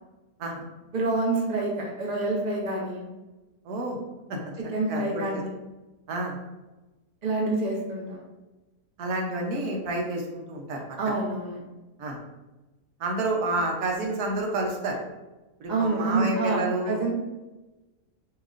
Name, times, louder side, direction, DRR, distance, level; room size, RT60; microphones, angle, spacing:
voice 1, 0.9-3.1 4.6-5.5 7.2-8.2 11.0-11.6 15.7-17.1, right 2 dB, 35° right, -2 dB, 0.9 m, -27 dB
voice 2, 3.6-4.0 4.3-4.4 4.9-5.3 6.1-6.4 9.0-11.2 12.0-12.2 13.0-15.0 15.6-17.0, right 2 dB, 80° right, 0 dB, 1.3 m, -29 dB
7.1 x 2.9 x 2.5 m, 1.1 s
omnidirectional pair, 1.6 m